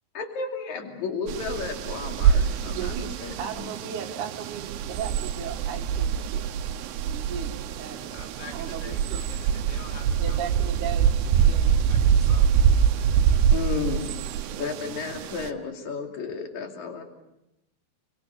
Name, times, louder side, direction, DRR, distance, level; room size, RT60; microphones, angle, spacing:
voice 1, 0.1-3.7 13.5-14.1 14.6-17.0, left 5 dB, 45° left, 3 dB, 3.4 m, -33 dB
sound 1, 1.3-15.5, right 8 dB, 75° right, 2.5 m, -24 dB
voice 2, 2.7-6.5 7.1-8.1 8.5-9.2 10.2-11.1 11.4-11.7 14.5-14.7 15.4-15.5, right 7 dB, 55° right, 0 dB, 2.5 m, -36 dB
voice 3, 8.1-10.4 11.3-13.5, left 5 dB, 65° left, 3 dB, 4.9 m, -48 dB
29.5 x 23.5 x 6.6 m, 0.89 s
omnidirectional pair, 5.7 m